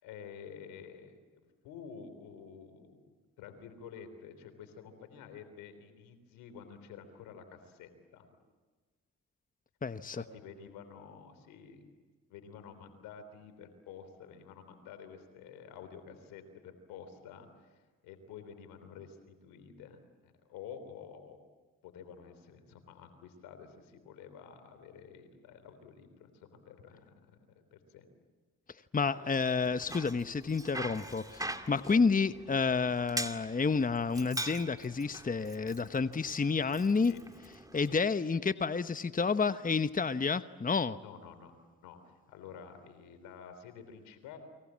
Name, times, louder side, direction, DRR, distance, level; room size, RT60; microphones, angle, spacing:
voice 1, 0.0-8.3 10.1-11.8 12.3-21.4 21.8-27.1 27.7-28.1 29.1-29.6 31.8-32.0 37.0-37.2 37.9-38.0 41.0-41.5 41.8-44.4, left 7 dB, 90° left, 9 dB, 3.4 m, -50 dB
voice 2, 9.8-10.2 28.9-37.1 37.7-41.0, left 4 dB, 25° left, 12 dB, 1.0 m, -30 dB
Bicycle, 29.6-38.0, right 1 dB, 10° right, 2.4 m, -43 dB
29.5 x 23.5 x 7.5 m, 1.4 s
supercardioid pair, 50°, 33 cm